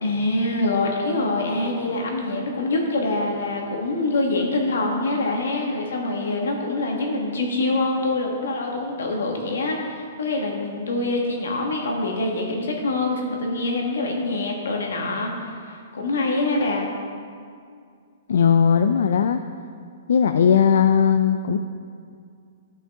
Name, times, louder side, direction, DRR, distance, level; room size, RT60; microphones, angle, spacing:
voice 1, 0.0-16.9, left 2 dB, 85° left, 0 dB, 1.7 m, -25 dB
voice 2, 18.3-19.4 20.1-21.6, left 7 dB, 65° left, 8 dB, 0.3 m, -18 dB
12.0 x 5.6 x 3.6 m, 2.3 s
hypercardioid pair, 175°, 0 cm